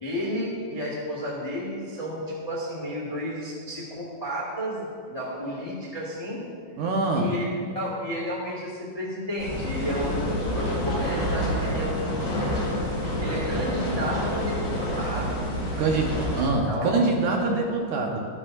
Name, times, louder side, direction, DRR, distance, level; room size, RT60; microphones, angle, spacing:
voice 1, 0.0-6.4 7.1-7.5 7.7-12.5 13.2-15.4 16.6-16.9 17.2-17.3, equal, 25° left, -5 dB, 0.7 m, -32 dB
voice 2, 6.8-7.3 15.8-18.2, right 3 dB, 70° right, 1 dB, 2.1 m, -24 dB
sound 1, 9.4-16.5, equal, 50° left, 3.4 m, -28 dB
13.0 x 11.5 x 2.6 m, 2.1 s
omnidirectional pair, 4.0 m